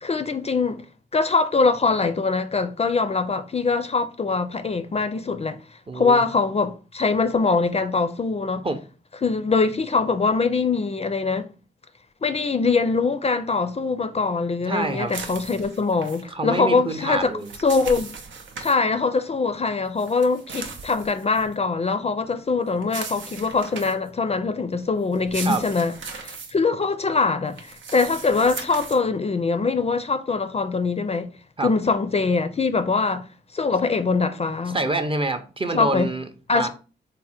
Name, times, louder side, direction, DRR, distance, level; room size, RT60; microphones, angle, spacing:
voice 1, 0.0-0.8 1.1-5.6 5.9-8.6 9.2-11.5 12.2-17.3 17.6-18.1 18.6-31.3 31.6-33.3 33.5-34.8 35.7-36.1 36.5-36.7, left 4 dB, 35° left, 0.4 m, -23 dB
voice 2, 5.9-6.2 8.6-8.8 14.7-15.1 16.3-17.5 25.4-25.6 31.6-31.7 34.7-36.7, right 2 dB, 30° right, 0.6 m, -26 dB
sound 1, 15.1-16.2 17.2-18.8 20.0-21.5 22.8-24.1 25.1-26.5 27.5-29.0, right 5 dB, 85° right, 0.6 m, -37 dB
3.5 x 2.1 x 4.2 m
cardioid pair, 60°, 19 cm